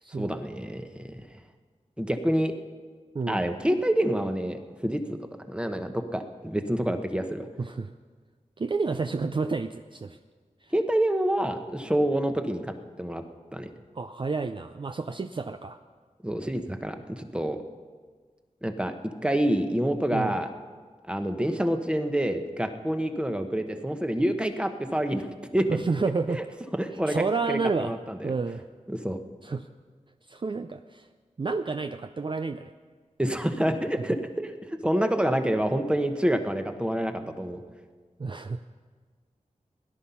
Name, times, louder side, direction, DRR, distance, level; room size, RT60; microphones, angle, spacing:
voice 1, 0.2-1.2 2.0-2.5 3.3-5.2 5.5-7.5 10.7-13.2 13.5-13.7 16.2-17.6 18.6-18.9 19.2-20.5 21.1-25.3 25.5-25.7 26.8-28.3 28.9-29.2 33.2-34.5 34.8-37.6, right 1 dB, 10° right, 7 dB, 1.0 m, -27 dB
voice 2, 7.6-7.9 8.6-10.2 10.6-10.7 13.9-15.8 20.1-20.4 25.7-26.4 27.1-27.9 28.2-28.7 29.4-29.7 30.3-31.1 31.4-32.7 38.2-38.6, right 4 dB, 40° right, 8 dB, 0.4 m, -30 dB
17.0 x 11.0 x 5.7 m, 1.5 s
wide cardioid pair, 85°, 13 cm